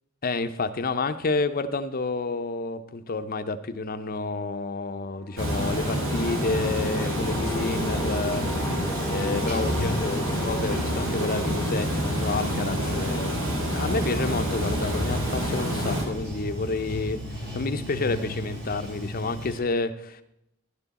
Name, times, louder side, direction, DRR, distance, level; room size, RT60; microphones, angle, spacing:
voice 1, 0.2-20.2, left 3 dB, 45° left, 10 dB, 0.6 m, -30 dB
sound 1, 5.0-11.8, left 1 dB, 15° left, 0.8 m, -37 dB
Water, 5.4-16.0, equal, 75° right, 2.7 m, -28 dB
Bathtub (filling or washing), 5.5-19.6, left 1 dB, 50° right, 2.5 m, -37 dB
11.5 x 9.2 x 4.1 m, 0.83 s
head